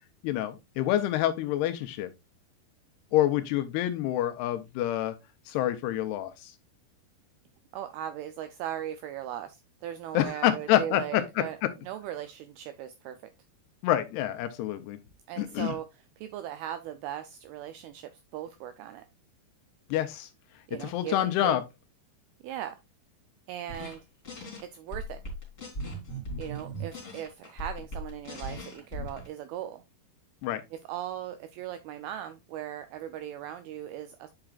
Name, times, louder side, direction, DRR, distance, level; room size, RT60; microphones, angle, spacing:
voice 1, 0.2-2.1 3.1-5.1 5.5-6.5 10.1-11.7 13.8-15.0 15.4-15.7 19.9-20.3 20.8-21.6 30.4-30.6, left 13 dB, 80° left, 2.5 m, -27 dB
voice 2, 7.7-11.6 11.8-13.2 15.3-19.1 20.7-21.6 22.4-22.8 23.5-24.0 24.7-25.2 26.4-29.8 30.7-34.3, right 11 dB, 85° right, 2.2 m, -38 dB
sound 1, 23.7-24.0 24.2-24.6 24.9-29.3, right 1 dB, 20° left, 2.9 m, -38 dB
8.8 x 5.8 x 2.3 m
omnidirectional pair, 5.0 m